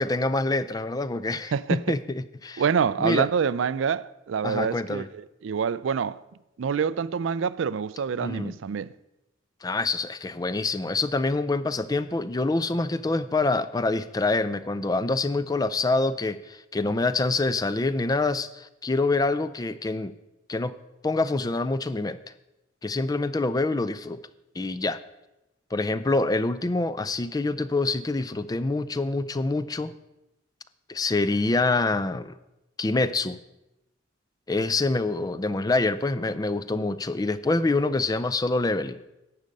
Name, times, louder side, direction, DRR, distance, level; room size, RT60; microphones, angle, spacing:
voice 1, 0.0-2.6 3.0-3.3 4.4-5.1 8.2-8.5 9.6-20.1 20.5-20.8 21.0-22.2 22.8-24.2 24.6-25.0 25.7-29.9 30.9-32.4 32.8-33.4 34.5-39.0, left 3 dB, 20° left, 0.4 m, -26 dB
voice 2, 2.6-6.2 6.6-8.9, right 6 dB, 70° right, 0.4 m, -26 dB
11.5 x 8.4 x 5.3 m
head